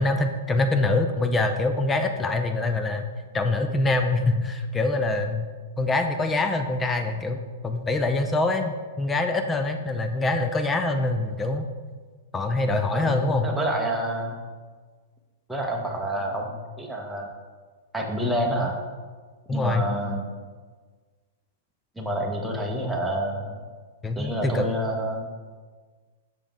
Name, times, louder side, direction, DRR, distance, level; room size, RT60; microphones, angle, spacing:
voice 1, 0.0-3.1 3.3-5.4 5.8-11.7 12.3-13.5 19.5-19.8 24.0-24.7, left 2 dB, 15° left, 6 dB, 0.4 m, -24 dB
voice 2, 12.9-14.4 15.5-17.3 17.9-18.8 19.5-20.3 22.0-23.6 24.2-25.3, equal, 5° right, -1 dB, 1.0 m, -28 dB
5.9 x 5.2 x 3.7 m, 1.5 s
hypercardioid pair, 115°, 0 cm